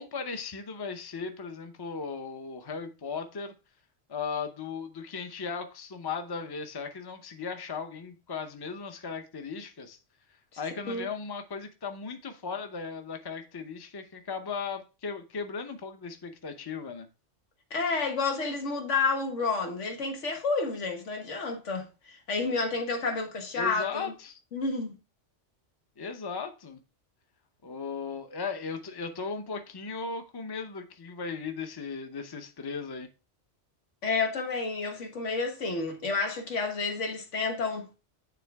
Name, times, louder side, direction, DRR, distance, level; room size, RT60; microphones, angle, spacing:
voice 1, 0.0-3.5 4.1-10.0 10.6-17.1 23.5-24.4 26.0-26.8 27.6-33.1, left 5 dB, 25° left, 0.7 m, -37 dB
voice 2, 17.7-24.1 24.5-24.9 34.0-37.9, left 4 dB, 85° left, 1.7 m, -30 dB
9.3 x 3.7 x 3.4 m
omnidirectional pair, 1.2 m